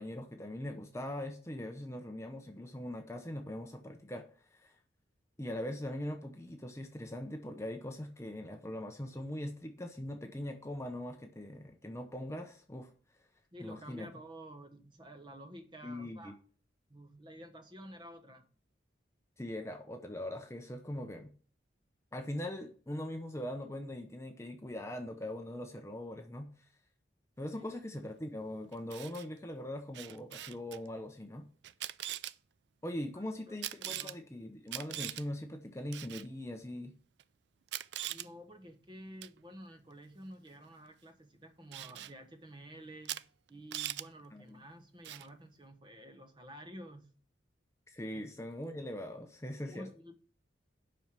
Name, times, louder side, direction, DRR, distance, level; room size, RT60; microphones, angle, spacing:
voice 1, 0.0-4.8 5.4-12.9 13.6-14.1 15.8-16.4 19.4-21.3 22.1-26.5 27.4-31.5 32.8-36.9 44.3-44.6 47.9-49.9, left 1 dB, 15° left, 0.7 m, -41 dB
voice 2, 13.5-16.4 16.9-18.4 27.5-27.6 33.1-34.2 38.1-43.2 43.5-47.1 48.1-48.2 49.6-50.1, right 1 dB, 25° right, 1.2 m, -51 dB
Camera, 28.7-29.2 29.9-30.8 31.6-32.3 33.6-34.1 34.7-35.2 35.9-36.3 37.2-37.3 37.7-38.3 39.2-39.4 41.7-42.1 43.0-43.2 43.5-44.0 45.0-45.3, right 13 dB, 65° right, 0.4 m, -41 dB
7.6 x 5.6 x 7.4 m
head